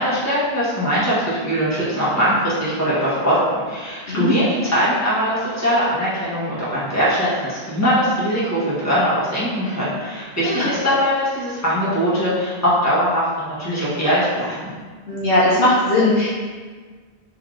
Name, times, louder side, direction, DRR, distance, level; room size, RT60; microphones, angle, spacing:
voice 1, 0.0-14.7, equal, 15° left, -10 dB, 1.4 m, -21 dB
voice 2, 15.1-16.3, left 1 dB, 70° left, -8 dB, 1.2 m, -18 dB
3.5 x 3.3 x 3.8 m, 1.5 s
omnidirectional pair, 1.1 m